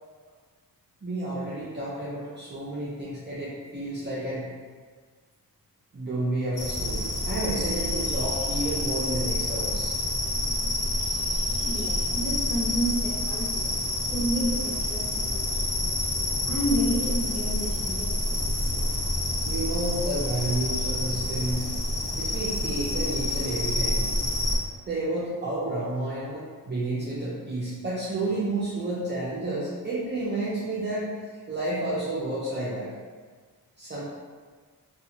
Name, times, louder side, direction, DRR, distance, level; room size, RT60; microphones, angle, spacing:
voice 1, 1.0-4.5 5.9-10.0 19.4-21.7 22.1-24.1 24.8-31.1 31.5-33.0 33.8-34.0, right 2 dB, 25° right, -8 dB, 0.5 m, -31 dB
sound 1, 6.6-24.6, left 1 dB, 55° left, 0.7 m, -28 dB
voice 2, 11.6-13.7 14.1-15.9 16.4-18.4, equal, 5° left, -7 dB, 0.9 m, -30 dB
2.5 x 2.3 x 2.8 m, 1.5 s
cardioid pair, 60°, 39 cm